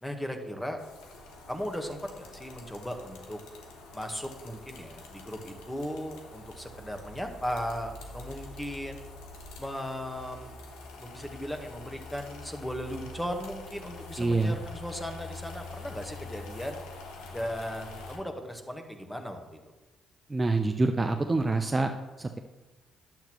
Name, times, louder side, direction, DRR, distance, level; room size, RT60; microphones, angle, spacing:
voice 1, 0.0-0.8 1.5-3.4 3.9-9.0 9.6-10.5 11.0-16.8 17.3-19.6, equal, 5° left, 4 dB, 1.4 m, -37 dB
sound 1, 0.8-18.2, left 3 dB, 90° left, 1.2 m, -45 dB
voice 2, 14.2-14.6 20.3-21.9 22.2-22.4, right 3 dB, 25° right, 5 dB, 0.5 m, -26 dB
10.5 x 7.9 x 3.1 m, 1.2 s
supercardioid pair, 65°, 0 cm